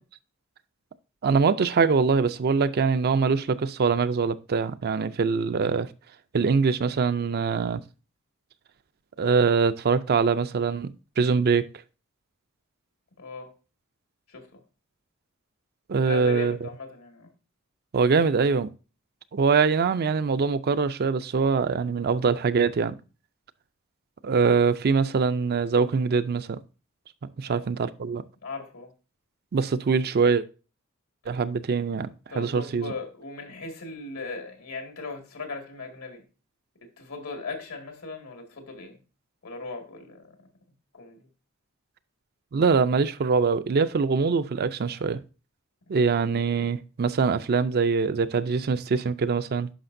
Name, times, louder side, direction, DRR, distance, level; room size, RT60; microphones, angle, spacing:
voice 1, 1.2-5.9 6.3-7.8 9.2-11.7 15.9-16.7 17.9-18.7 19.3-23.0 24.2-26.6 27.4-28.2 29.5-30.4 31.3-32.1 32.4-32.9 42.5-45.2 45.9-49.7, right 5 dB, 50° right, 0.4 m, -23 dB
voice 2, 13.2-13.5 14.3-14.6 16.0-17.3 27.4-27.7 28.4-28.9 32.3-36.2 37.0-39.0 39.4-40.5 40.9-41.3 45.9-46.0, left 3 dB, 85° left, 2.0 m, -38 dB
10.0 x 5.8 x 2.6 m
head